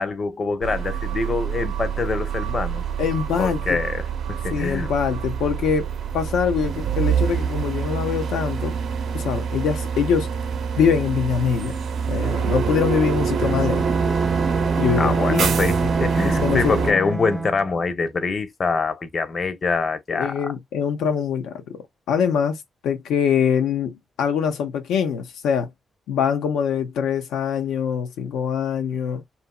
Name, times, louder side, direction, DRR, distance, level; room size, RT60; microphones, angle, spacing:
voice 1, 0.0-2.8 3.4-4.9 14.9-20.5, left 4 dB, 45° left, 0.7 m, -25 dB
sound 1, 0.6-16.9, right 6 dB, 70° right, 0.7 m, -26 dB
voice 2, 3.0-3.8 4.5-5.9 6.1-8.8 9.1-10.3 10.8-11.8 12.1-13.9 14.8-15.5 16.2-17.0 20.1-25.7 26.1-29.2, left 7 dB, 90° left, 0.5 m, -23 dB
Bowed string instrument, 13.4-17.7, right 4 dB, 15° right, 0.4 m, -26 dB
2.8 x 2.6 x 2.2 m
cardioid pair, 70°, 0 cm